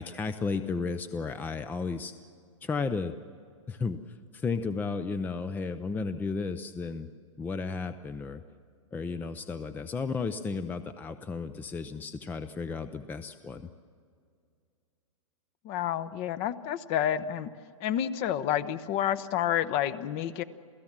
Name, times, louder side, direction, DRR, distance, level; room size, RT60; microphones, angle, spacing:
voice 1, 0.0-2.1 2.6-3.1 3.7-7.1 7.4-8.4 8.9-13.7, left 4 dB, 10° left, 11 dB, 0.6 m, -33 dB
voice 2, 15.6-17.5 17.8-20.4, left 10 dB, 35° left, 13 dB, 1.0 m, -29 dB
28.0 x 16.5 x 7.4 m, 2.3 s
hypercardioid pair, 135°, 17 cm